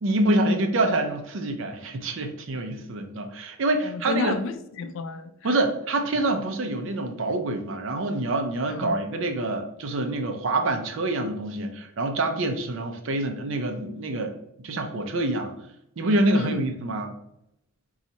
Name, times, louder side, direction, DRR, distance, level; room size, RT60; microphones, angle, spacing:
voice 1, 0.0-4.3 5.4-14.3 14.6-15.5 16.0-17.1, right 2 dB, 65° right, 6 dB, 0.5 m, -26 dB
voice 2, 3.8-5.6 8.7-9.0 16.3-16.6, left 4 dB, 65° left, 9 dB, 0.3 m, -32 dB
4.1 x 2.3 x 2.7 m, 0.78 s
head